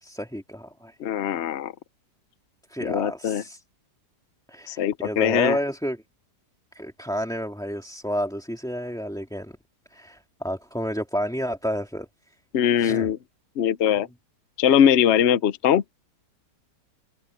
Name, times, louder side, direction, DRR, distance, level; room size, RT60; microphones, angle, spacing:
voice 1, 0.0-0.9 2.7-3.6 4.5-6.0 6.7-9.5 9.9-12.1 12.8-13.1, equal, ahead, 2.2 m, -30 dB
voice 2, 1.0-1.7 2.8-3.4 4.7-5.6 12.5-13.2 13.6-14.1 14.6-15.8, left 9 dB, 60° left, 0.7 m, -21 dB
omnidirectional pair, 1.9 m